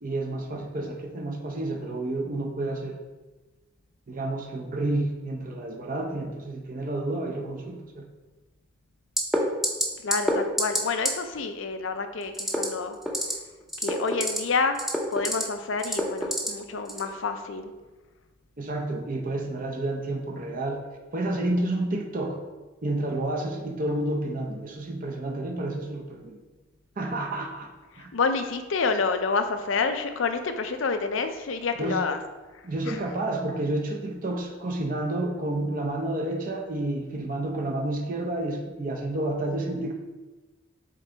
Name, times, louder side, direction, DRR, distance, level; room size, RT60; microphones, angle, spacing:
voice 1, 0.0-3.0 4.1-8.1 18.6-20.8 21.1-22.4 22.8-26.4 27.0-27.7 28.0-28.1 31.8-32.0 32.6-39.9, right 2 dB, 40° right, 2 dB, 0.6 m, -30 dB
sound 1, 9.2-9.4 9.6-9.8 10.1-10.3 10.6-10.8 11.0-11.1 12.3-12.6 13.0-13.3 13.7-14.4 14.7-15.4 15.8-16.5 16.9-17.1, equal, ahead, 0.7 m, -25 dB
voice 2, 10.0-13.0 13.8-14.8 15.1-17.7 28.0-32.2 32.9-33.0, left 4 dB, 70° left, 8 dB, 0.5 m, -28 dB
7.6 x 3.9 x 3.3 m, 1.2 s
head